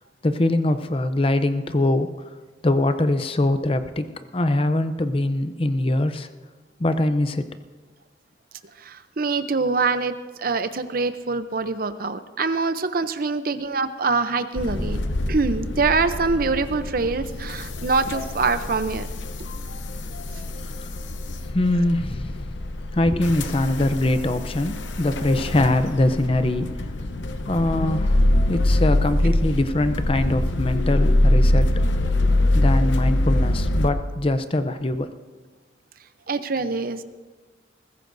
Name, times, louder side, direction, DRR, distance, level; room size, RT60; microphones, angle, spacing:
voice 1, 0.2-2.1 2.6-4.1 4.3-6.3 6.8-7.5 13.5-13.7 19.5-19.7 20.5-20.9 21.4-22.6 22.9-26.7 27.5-31.7 32.5-35.1, left 1 dB, 30° left, 10 dB, 0.6 m, -23 dB
voice 2, 8.8-10.1 10.4-15.0 15.3-19.1 36.3-37.0, right 4 dB, 50° right, 11 dB, 0.7 m, -24 dB
sound 1, 14.6-33.9, left 1 dB, 85° left, 0.8 m, -24 dB
21.0 x 15.0 x 2.7 m, 1.3 s
head